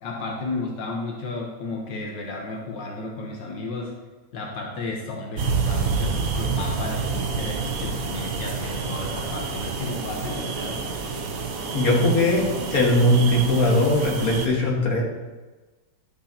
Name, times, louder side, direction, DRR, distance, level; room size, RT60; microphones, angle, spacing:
voice 1, 0.0-3.9 4.3-10.8, left 3 dB, 85° left, -1 dB, 1.8 m, -33 dB
sound 1, 5.4-14.5, right 4 dB, 55° right, 1.2 m, -28 dB
voice 2, 11.7-12.4 12.7-15.0, left 1 dB, 55° left, -2 dB, 2.1 m, -20 dB
11.0 x 6.8 x 2.9 m, 1.2 s
omnidirectional pair, 1.9 m